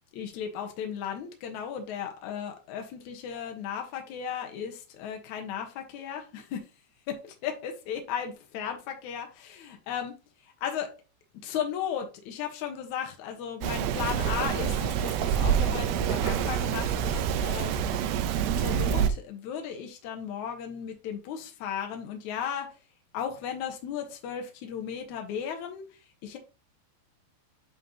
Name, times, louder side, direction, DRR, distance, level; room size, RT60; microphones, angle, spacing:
voice 1, 0.1-6.6 7.1-10.1 10.4-10.9 11.4-17.7 18.5-22.7 23.1-26.4, left 8 dB, 85° left, 1.6 m, -35 dB
Rain, 13.6-19.1, right 8 dB, 80° right, 2.6 m, -27 dB
10.5 x 3.9 x 2.9 m
omnidirectional pair, 5.2 m